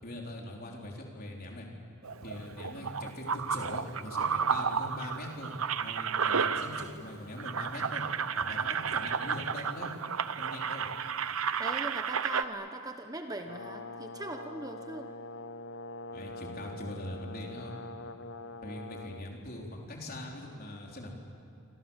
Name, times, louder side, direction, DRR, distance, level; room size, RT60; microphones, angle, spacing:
voice 1, 0.0-1.7 2.2-5.5 5.8-8.1 8.4-9.9 10.4-10.9 16.1-17.7 18.6-21.1, left 1 dB, 40° left, -1 dB, 4.4 m, -42 dB
sound 1, 2.0-7.1 7.4-12.4, right 6 dB, 70° right, 0.9 m, -32 dB
voice 2, 11.6-15.1, right 2 dB, 15° right, 5 dB, 1.0 m, -40 dB
Brass instrument, 13.5-19.3, left 2 dB, 55° left, 0.9 m, -44 dB
28.5 x 25.5 x 7.4 m, 2.7 s
head